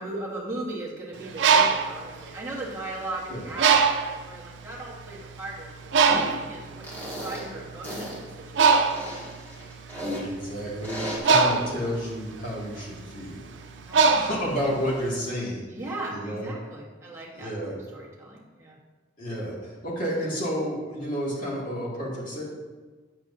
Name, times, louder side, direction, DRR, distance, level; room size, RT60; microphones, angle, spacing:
voice 1, 0.0-4.0 4.2-6.9 7.2-9.0 13.9-14.3 14.6-14.7 15.7-18.8, right 2 dB, 15° right, -5 dB, 1.6 m, -38 dB
Bird, 1.2-3.0 3.6-4.3 4.9-5.1 5.3-15.1, right 5 dB, 80° right, 0.5 m, -23 dB
sound 1, 6.1-6.3 6.8-7.4 7.8-8.2 8.8-10.2 10.8-11.2, equal, 10° left, 1.7 m, -35 dB
voice 2, 10.2-13.4 14.1-15.7 16.1-16.5 17.3-17.8 19.2-22.4, equal, 50° left, -6 dB, 2.4 m, -31 dB
8.9 x 7.3 x 2.8 m, 1.3 s
head